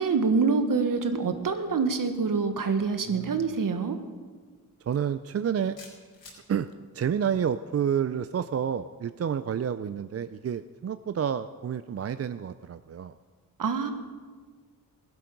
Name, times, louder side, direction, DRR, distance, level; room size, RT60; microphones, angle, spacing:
voice 1, 0.0-4.0 13.6-13.9, right 4 dB, 65° right, 7 dB, 1.5 m, -26 dB
voice 2, 3.1-3.6 4.9-5.8 6.5-6.7 6.9-13.1, right 8 dB, 45° right, 12 dB, 0.5 m, -29 dB
sound 1, 4.9-5.1 5.8-6.4, left 3 dB, 75° left, 4.8 m, -48 dB
17.0 x 11.5 x 5.3 m, 1.5 s
cardioid pair, 70°, 36 cm